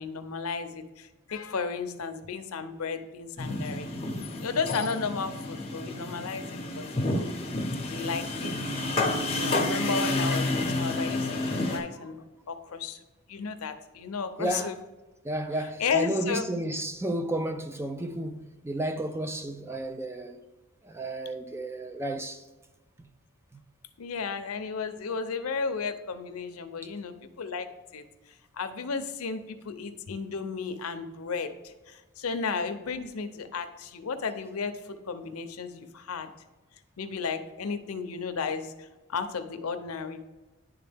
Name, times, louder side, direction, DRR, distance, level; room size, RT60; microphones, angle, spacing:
voice 1, 0.0-3.9 4.4-7.3 7.9-8.6 9.3-12.2 12.5-13.0 13.3-14.8 15.8-16.5 24.0-28.0 28.5-36.3 37.0-40.2, left 5 dB, 90° left, 0.6 m, -34 dB
sound 1, 3.4-11.8, left 2 dB, 30° left, 0.9 m, -30 dB
voice 2, 14.4-14.7 15.2-20.4 20.8-22.4 23.5-23.6, right 1 dB, 10° right, 0.3 m, -32 dB
10.5 x 3.5 x 3.4 m
head